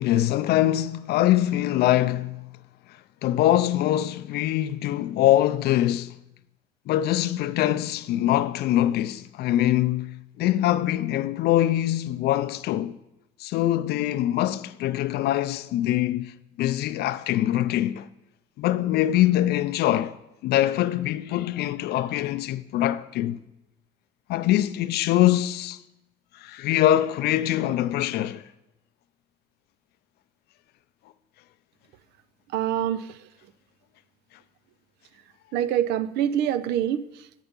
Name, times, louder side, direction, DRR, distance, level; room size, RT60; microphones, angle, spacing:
voice 1, 0.0-2.5 3.2-6.2 6.9-13.0 13.4-18.1 18.6-20.2 20.4-23.4 24.3-25.8 26.3-28.4, left 13 dB, 70° left, 0.4 m, -23 dB
voice 2, 32.5-33.1 35.5-37.0, right 10 dB, 80° right, 0.4 m, -25 dB
8.2 x 5.6 x 5.1 m
cardioid pair, 110°, 17 cm